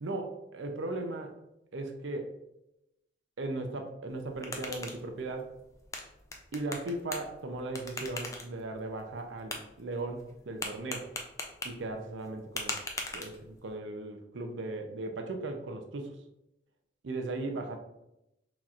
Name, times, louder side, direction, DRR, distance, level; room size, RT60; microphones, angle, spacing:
voice 1, 0.0-1.3 1.7-2.3 3.4-5.5 6.5-11.1 11.6-12.8 13.1-16.1 17.0-17.8, right 2 dB, 70° right, 5 dB, 0.5 m, -37 dB
sound 1, 4.1-13.7, left 2 dB, 15° left, 0.4 m, -42 dB
5.9 x 2.9 x 2.4 m, 0.90 s
head